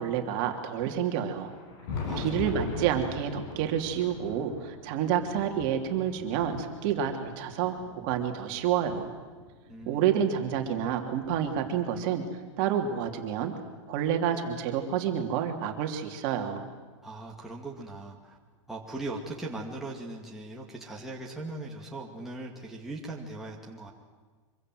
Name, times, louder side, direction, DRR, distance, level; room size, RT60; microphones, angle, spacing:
voice 1, 0.0-1.5 2.2-7.8 8.0-9.1 9.9-12.2 12.6-13.5 13.9-16.6, right 9 dB, 40° right, 4 dB, 3.0 m, -29 dB
Thunder, 1.3-9.9 10.6-12.3 13.4-13.5 14.1-14.2 16.0-16.1 17.5-17.6 19.2-19.3, left 4 dB, 45° left, 6.2 m, -41 dB
voice 2, 2.0-2.7 9.7-10.4 17.0-18.4 18.7-23.9, right 2 dB, ahead, -3 dB, 2.3 m, -40 dB
25.5 x 24.5 x 7.8 m, 1.4 s
supercardioid pair, 165°, 17 cm